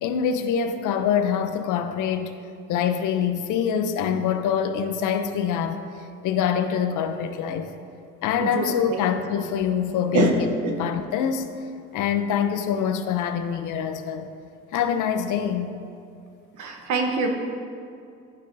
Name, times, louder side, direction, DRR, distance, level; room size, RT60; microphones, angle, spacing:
voice 1, 0.0-2.3 2.7-5.8 6.2-7.7 8.2-11.5 11.9-14.3 14.7-15.7, left 8 dB, 85° left, 8 dB, 0.6 m, -25 dB
voice 2, 8.4-9.0 10.1-10.3 10.6-10.7 16.6-17.3, right 4 dB, 75° right, 3 dB, 1.0 m, -25 dB
11.5 x 5.3 x 2.6 m, 2.5 s
cardioid pair, 90°, 30 cm